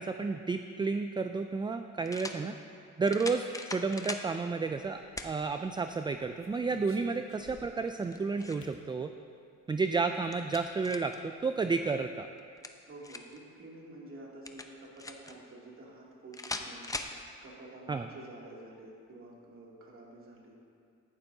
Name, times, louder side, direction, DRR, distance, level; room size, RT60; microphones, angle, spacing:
voice 1, 0.0-2.6 3.0-9.1 9.7-12.3 17.9-18.1, right 4 dB, 15° right, 8 dB, 0.3 m, -31 dB
sound 1, 0.8-0.9 2.1-2.4 3.1-4.3 5.2-5.3 5.9-6.0 7.9-8.7 10.0-11.2 12.4-13.4 14.5-15.3 16.3-17.2, left 2 dB, 10° left, 0.7 m, -40 dB
sound 2, 4.8-5.4 5.9-7.9 8.6-8.9 10.0-10.1 10.5-10.7 11.0-11.1 11.4-11.8, left 4 dB, 45° left, 1.2 m, -57 dB
voice 2, 12.8-16.9 17.4-20.6, right 2 dB, 45° right, -4 dB, 2.7 m, -49 dB
14.0 x 11.5 x 2.8 m, 2.3 s
cardioid pair, 90°, 30 cm